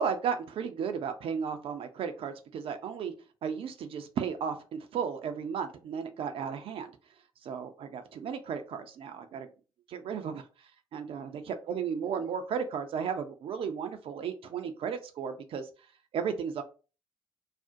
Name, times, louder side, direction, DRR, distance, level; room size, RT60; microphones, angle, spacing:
voice 1, 0.0-3.1 3.4-6.9 7.4-9.5 9.9-10.4 10.9-15.7 16.1-16.6, right 7 dB, 60° right, 7 dB, 0.4 m, -34 dB
2.4 x 2.1 x 2.5 m, 0.34 s
hypercardioid pair, 45°, 11 cm